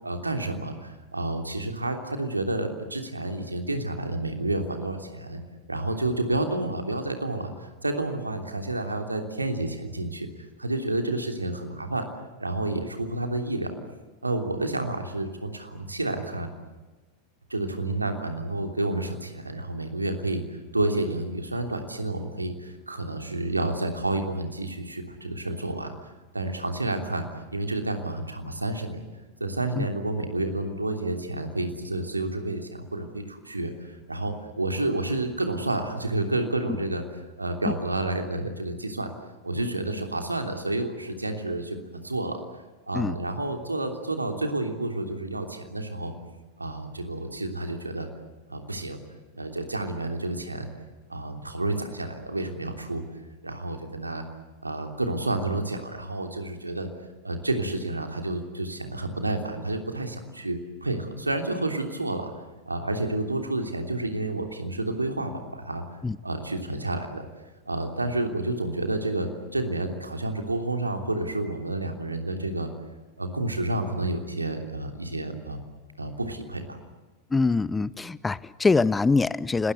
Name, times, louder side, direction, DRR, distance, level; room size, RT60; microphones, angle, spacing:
voice 1, 0.0-5.4 5.7-10.3 10.6-12.1 12.4-13.7 14.2-16.5 17.5-26.0 26.3-29.0 29.4-39.1 39.4-42.4 42.9-46.1 46.6-48.1 48.5-49.0 49.3-50.7 51.1-53.0 53.4-54.2 54.6-56.9 57.2-62.3 62.7-65.8 66.2-67.2 67.7-72.7 73.2-75.7 76.0-76.8, right 2 dB, 80° right, 5 dB, 3.1 m, -30 dB
voice 2, 77.3-79.7, left 4 dB, 10° left, 20 dB, 0.7 m, -23 dB
29.0 x 20.5 x 8.2 m, 1.3 s
figure-of-eight pair, 90°, 0 cm